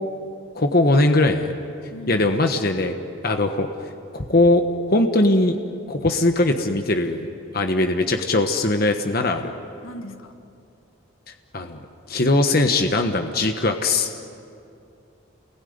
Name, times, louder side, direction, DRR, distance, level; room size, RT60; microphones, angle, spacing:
voice 1, 0.5-1.5 2.1-2.9 3.2-3.7 4.1-5.6 5.9-9.5 11.3-11.8 12.1-14.1, left 2 dB, 50° left, 5 dB, 1.3 m, -20 dB
voice 2, 1.9-2.3 9.8-10.4, left 1 dB, 85° left, 6 dB, 1.8 m, -38 dB
29.0 x 21.0 x 9.6 m, 2.5 s
head